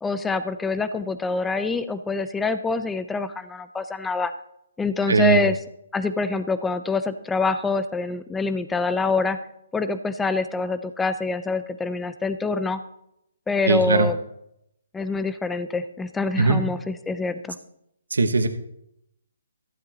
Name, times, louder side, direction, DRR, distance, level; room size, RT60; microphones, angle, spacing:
voice 1, 0.0-4.3 4.8-5.6 5.9-9.4 9.7-12.8 13.5-14.2 14.9-17.6, left 3 dB, 5° left, 12 dB, 0.6 m, -25 dB
voice 2, 5.1-5.4 13.7-14.1 16.4-16.6 18.1-18.5, right 3 dB, 85° right, 7 dB, 1.2 m, -19 dB
14.0 x 12.5 x 3.0 m, 0.78 s
hypercardioid pair, 150°, 0 cm